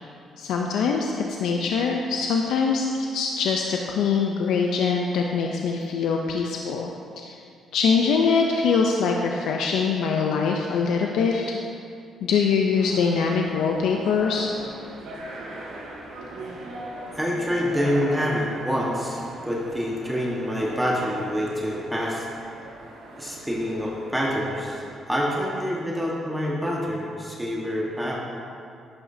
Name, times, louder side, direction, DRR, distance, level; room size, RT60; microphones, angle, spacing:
voice 1, 0.4-6.9 7.2-7.4 7.7-11.5 12.2-14.5, left 5 dB, 85° left, 1 dB, 0.5 m, -23 dB
sound 1, 12.8-25.0, right 2 dB, 85° right, 1.8 m, -40 dB
voice 2, 17.1-22.2 23.2-28.2, equal, 5° right, -4 dB, 1.4 m, -27 dB
11.0 x 8.8 x 2.7 m, 2.4 s
cardioid pair, 90°, 0 cm